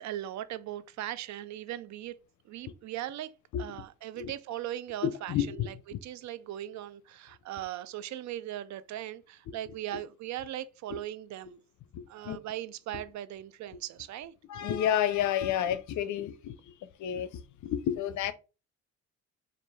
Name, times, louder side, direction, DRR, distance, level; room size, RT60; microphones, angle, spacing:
voice 1, 0.0-2.1 2.4-3.3 3.6-5.7 6.0-11.6 12.1-14.3, right 12 dB, 65° right, 0.5 m, -39 dB
voice 2, 5.0-6.0 10.9-11.0 11.9-12.4 14.5-16.6 17.0-18.3, left 10 dB, 75° left, 0.6 m, -30 dB
4.4 x 2.5 x 3.2 m
cardioid pair, 90°, 30 cm